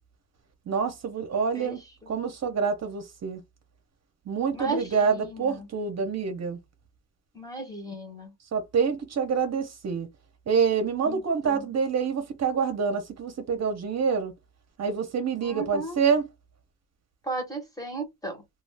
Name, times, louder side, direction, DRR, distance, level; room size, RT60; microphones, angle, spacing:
voice 1, 0.7-1.8 2.1-3.4 4.3-6.6 8.5-10.1 10.5-14.3 14.8-16.3, right 6 dB, 45° right, 0.7 m, -26 dB
voice 2, 4.5-5.7 7.3-8.3 11.1-11.7 15.4-16.0 17.2-18.4, right 2 dB, 10° left, 0.9 m, -35 dB
2.4 x 2.3 x 3.3 m
wide cardioid pair, 170°, 36 cm